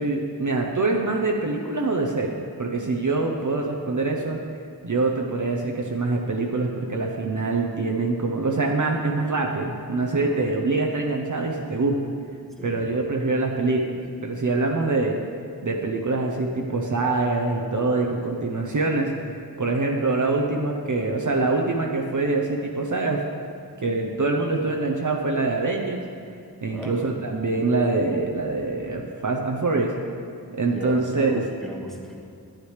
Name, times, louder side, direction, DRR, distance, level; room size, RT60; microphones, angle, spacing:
voice 1, 0.0-4.4 4.8-12.0 12.6-15.2 15.6-19.1 19.6-23.2 23.8-26.0 26.6-29.9 30.5-31.4, right 3 dB, 50° right, 1 dB, 0.7 m, -24 dB
voice 2, 10.2-10.5 12.6-12.9 26.7-27.2 30.6-32.2, equal, ahead, -1 dB, 1.2 m, -37 dB
9.8 x 8.3 x 3.2 m, 2.4 s
wide cardioid pair, 55°, 40 cm